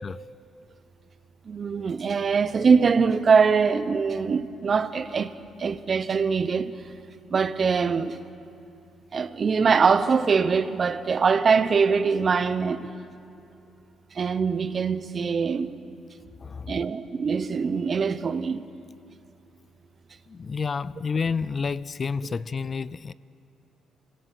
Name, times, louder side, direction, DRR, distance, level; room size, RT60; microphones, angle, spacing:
voice 1, 1.5-6.7 7.3-8.2 9.1-12.9 14.1-15.8 16.7-18.6, right 5 dB, 45° right, 1.0 m, -23 dB
voice 2, 16.4-16.7 20.3-23.1, left 5 dB, 40° left, 0.4 m, -29 dB
25.0 x 20.0 x 8.4 m
cardioid pair, 90°, 0 cm